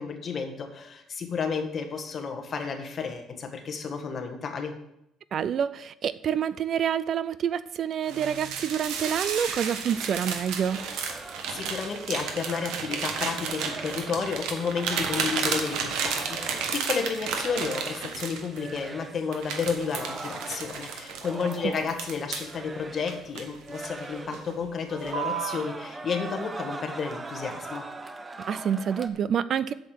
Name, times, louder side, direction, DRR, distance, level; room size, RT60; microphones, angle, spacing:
voice 1, 0.0-4.7 11.5-27.9, left 5 dB, 35° left, 4 dB, 1.5 m, -32 dB
voice 2, 5.3-10.8 28.5-29.7, right 8 dB, 45° right, 16 dB, 0.3 m, -27 dB
sound 1, 8.1-18.8 19.3-22.5 23.1-24.0 24.3-24.6 25.1-25.6, right 6 dB, 90° right, 1.5 m, -32 dB
sound 2, 10.7-16.9 17.2-18.2 18.5-19.3 19.7-22.1 22.4-23.3 23.6-24.6 24.8-29.1, right 2 dB, 15° right, 0.7 m, -41 dB
8.1 x 6.6 x 7.6 m, 0.81 s
cardioid pair, 150°, 0 cm